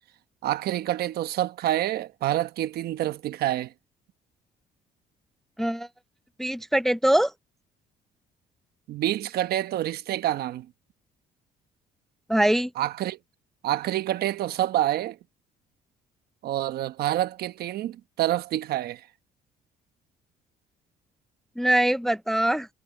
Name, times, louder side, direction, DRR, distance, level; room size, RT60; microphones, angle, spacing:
voice 1, 0.4-3.7 8.9-10.7 12.8-13.2 13.6-15.2 16.4-19.0, right 13 dB, 70° right, 1.1 m, -27 dB
voice 2, 6.4-7.3 12.3-12.7 21.6-22.7, right 1 dB, ahead, 0.4 m, -22 dB
cardioid pair, 110°, 17 cm